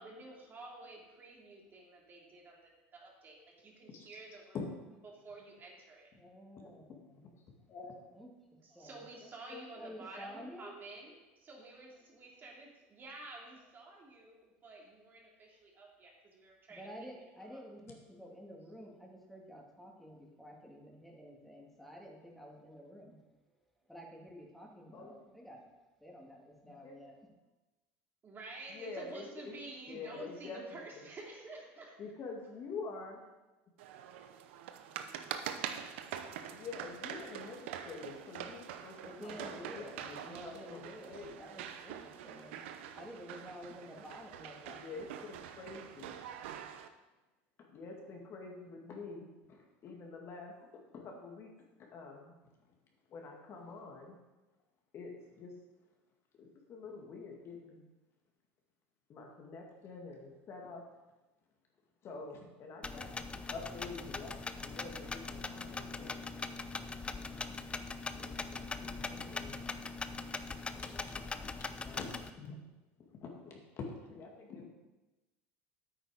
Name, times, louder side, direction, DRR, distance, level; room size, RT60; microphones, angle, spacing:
voice 1, 0.0-2.6 2.9-4.6 5.1-6.1 8.6-16.9 28.2-32.0, right 2 dB, 35° right, -2 dB, 3.0 m, -50 dB
voice 2, 6.1-7.2 8.1-8.3 8.7-9.0 9.8-10.8 11.6-11.7 13.5-13.6 16.0-16.1 16.7-23.2 23.9-25.7 26.0-27.2 39.0-42.6 43.0-44.8, equal, ahead, -1 dB, 2.5 m, -51 dB
voice 3, 7.7-8.1 9.2-9.7 24.9-25.2 26.7-27.0 28.7-31.0 32.0-33.3 36.5-41.3 44.8-46.1 47.6-51.5 51.8-52.3 53.1-54.2 54.9-55.6 56.4-57.8 59.1-60.9 62.0-63.1 63.5-66.2 68.1-69.6 70.8-71.2 71.5-72.6 73.0-74.7, left 4 dB, 45° left, 1 dB, 2.2 m, -47 dB
sound 1, 33.8-46.9, right 9 dB, 85° right, 0.8 m, -45 dB
sound 2, 62.8-72.3, left 4 dB, 20° left, 0.6 m, -41 dB
8.9 x 8.7 x 5.0 m, 1.1 s
supercardioid pair, 105°, 6 cm